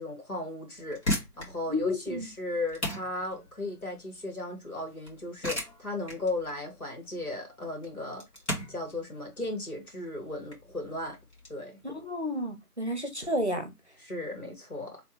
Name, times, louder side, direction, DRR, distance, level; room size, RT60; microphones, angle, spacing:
voice 1, 0.0-8.2 8.7-11.2 11.5-11.8 14.0-15.0, left 2 dB, 60° left, 2.3 m, -36 dB
sound 1, 0.7-11.5, left 1 dB, 45° left, 2.1 m, -37 dB
voice 2, 1.7-2.3 11.8-13.7, left 1 dB, 45° right, 0.8 m, -31 dB
4.5 x 3.3 x 3.1 m
figure-of-eight pair, 180°, 48 cm